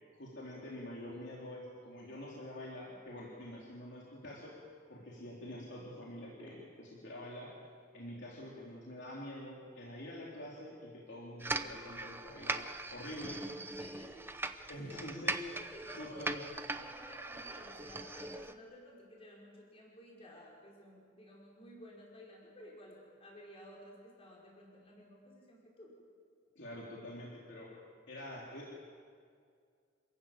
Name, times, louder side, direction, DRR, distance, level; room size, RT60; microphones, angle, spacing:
voice 1, 0.1-4.5 4.9-7.5 7.9-13.4 14.7-15.6 16.0-16.4 26.6-27.7 28.1-28.7, left 1 dB, 60° left, -4 dB, 3.7 m, -46 dB
sound 1, 11.4-18.5, right 2 dB, 10° right, 0.8 m, -40 dB
voice 2, 13.8-14.2 14.8-15.1 15.7-16.3 16.7-25.9, equal, 30° left, -4 dB, 5.2 m, -54 dB
27.0 x 15.5 x 8.9 m, 2.2 s
head